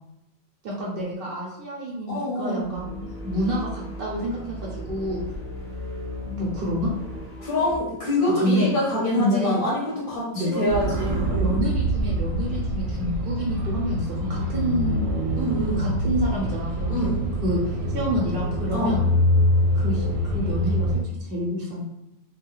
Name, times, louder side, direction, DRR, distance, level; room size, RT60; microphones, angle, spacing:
voice 1, 0.6-5.2 6.3-6.9 8.4-8.7 9.2-9.6 10.3-10.7 11.3-15.0 15.8-19.1 19.7-21.8, equal, 55° right, -4 dB, 0.7 m, -28 dB
voice 2, 2.1-2.8 7.4-10.3 10.5-11.5 15.4-15.9 16.9-17.4 18.7-18.9, left 1 dB, 50° left, -6 dB, 0.8 m, -25 dB
sound 1, 2.6-7.8, left 1 dB, 15° left, 0.5 m, -36 dB
sound 2, 10.7-21.0, equal, 80° right, 1.0 m, -25 dB
2.3 x 2.3 x 3.0 m, 0.86 s
omnidirectional pair, 1.4 m